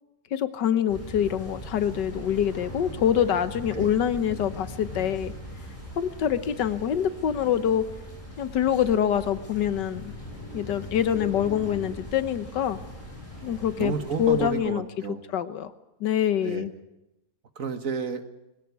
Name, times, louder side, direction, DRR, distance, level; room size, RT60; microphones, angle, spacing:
voice 1, 0.3-5.3 6.0-7.9 8.4-10.1 10.5-12.8 13.4-13.9 14.2-14.9 15.3-15.7 16.0-16.7, left 9 dB, 90° left, 13 dB, 1.7 m, -25 dB
sound 1, 0.9-14.5, left 1 dB, 20° left, 7.8 m, -40 dB
voice 2, 13.8-15.2 16.4-16.7 17.6-18.2, right 5 dB, 50° right, 9 dB, 1.7 m, -30 dB
21.5 x 17.0 x 9.5 m, 0.94 s
omnidirectional pair, 1.8 m